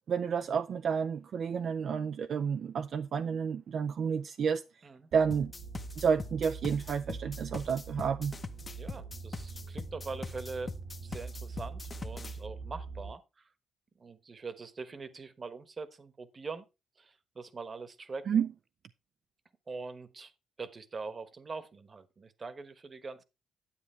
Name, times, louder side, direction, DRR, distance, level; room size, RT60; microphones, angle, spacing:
voice 1, 0.1-4.6 5.1-5.5 6.0-8.3 18.3-18.5, right 6 dB, 60° right, 0.4 m, -30 dB
sound 1, 5.1-13.1, right 5 dB, 80° right, 2.6 m, -44 dB
sound 2, 5.3-12.4, left 4 dB, 30° left, 0.9 m, -42 dB
voice 2, 8.8-10.7 11.0-13.5 14.0-16.7 17.0-18.5 19.7-20.3 20.6-23.2, right 4 dB, 35° right, 1.1 m, -43 dB
10.0 x 8.3 x 3.3 m
cardioid pair, 90°, 0 cm